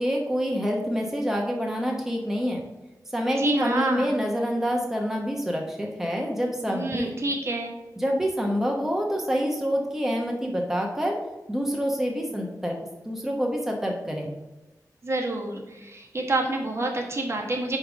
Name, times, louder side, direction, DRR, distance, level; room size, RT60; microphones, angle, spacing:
voice 1, 0.0-2.6 3.1-7.1 8.0-11.2 11.5-12.7 13.0-14.3, equal, 5° right, 0 dB, 0.9 m, -27 dB
voice 2, 3.3-4.1 6.7-7.7 15.0-17.8, right 2 dB, 40° right, 1 dB, 1.3 m, -28 dB
5.4 x 4.7 x 6.1 m, 1.1 s
wide cardioid pair, 125°, 7 cm